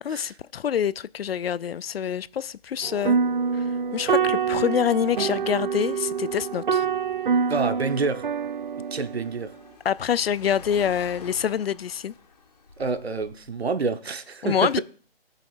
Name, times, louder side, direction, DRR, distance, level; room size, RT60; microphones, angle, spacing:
voice 1, 0.0-3.2 3.5-6.9 9.8-12.1 14.4-14.8, left 8 dB, 70° left, 0.4 m, -26 dB
sound 1, 2.8-9.4, right 6 dB, 55° right, 0.5 m, -26 dB
Car, 5.7-13.7, left 4 dB, 40° left, 1.5 m, -49 dB
voice 2, 7.5-8.2 8.9-9.5 12.8-14.8, right 4 dB, 85° right, 1.1 m, -28 dB
20.0 x 6.9 x 2.4 m
figure-of-eight pair, 160°, 31 cm